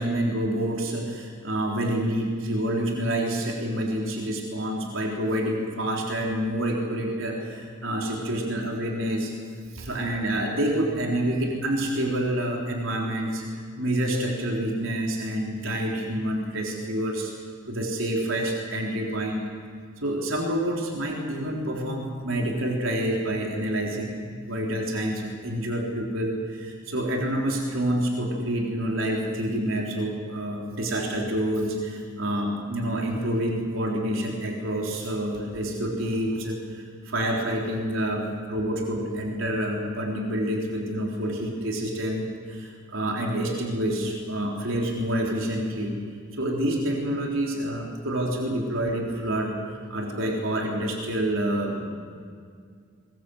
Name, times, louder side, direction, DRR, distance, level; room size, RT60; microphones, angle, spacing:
voice 1, 0.0-9.3 9.7-17.3 17.7-19.5 20.0-45.9 46.4-49.5 49.9-51.9, right 1 dB, 75° right, -1 dB, 3.9 m, -28 dB
23.5 x 21.5 x 8.0 m, 2.1 s
head